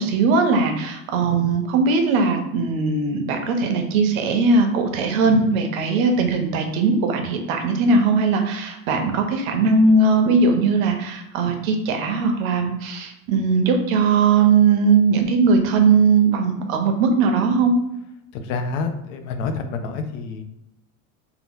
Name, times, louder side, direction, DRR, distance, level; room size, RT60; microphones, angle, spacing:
voice 1, 0.0-17.7, right 4 dB, 80° right, 4 dB, 0.7 m, -19 dB
voice 2, 5.2-5.6 18.3-20.4, left 4 dB, 65° left, 7 dB, 0.5 m, -28 dB
2.8 x 2.1 x 3.5 m, 0.85 s
cardioid pair, 170°, 40 cm